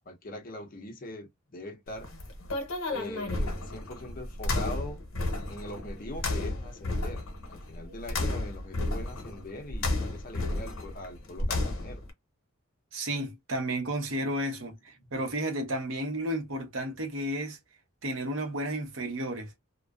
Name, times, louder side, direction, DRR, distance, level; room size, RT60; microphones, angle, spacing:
voice 1, 0.1-2.1 2.9-5.0 5.5-12.0 15.0-15.1, left 1 dB, 40° left, 0.6 m, -42 dB
sound 1, 1.9-12.1, left 2 dB, 80° left, 0.8 m, -32 dB
voice 2, 12.9-17.6 18.0-19.5, right 1 dB, 70° right, 0.8 m, -32 dB
2.4 x 2.2 x 2.2 m
head